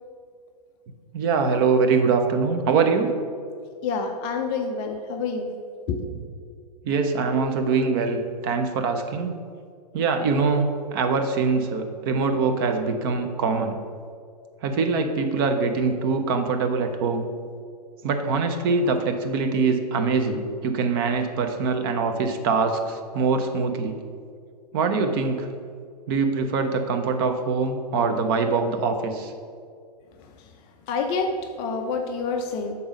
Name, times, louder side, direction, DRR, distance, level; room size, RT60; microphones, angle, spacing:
voice 1, 1.1-3.1 6.8-9.3 9.9-13.8 14.6-17.3 18.0-24.0 24.7-25.5 26.1-29.3, right 4 dB, 35° right, 6 dB, 0.6 m, -23 dB
voice 2, 3.8-5.5 5.9-6.1 30.9-31.3 31.6-32.7, left 4 dB, 25° left, 4 dB, 0.4 m, -27 dB
6.9 x 4.0 x 5.1 m, 2.2 s
figure-of-eight pair, 110°, 21 cm